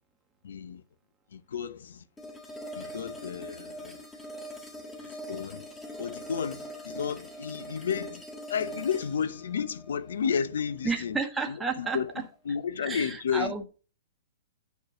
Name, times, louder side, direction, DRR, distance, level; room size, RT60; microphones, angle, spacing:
voice 1, 0.4-0.8 1.3-2.0 2.7-4.0 5.3-5.6 6.0-8.2 8.5-11.2 11.5-12.1 12.5-13.5, left 7 dB, 80° left, 0.8 m, -32 dB
sound 1, 2.2-11.2, equal, 10° left, 1.5 m, -42 dB
voice 2, 10.8-12.2 12.8-13.6, right 4 dB, 5° right, 1.1 m, -31 dB
9.4 x 4.6 x 5.0 m
hypercardioid pair, 155°, 0 cm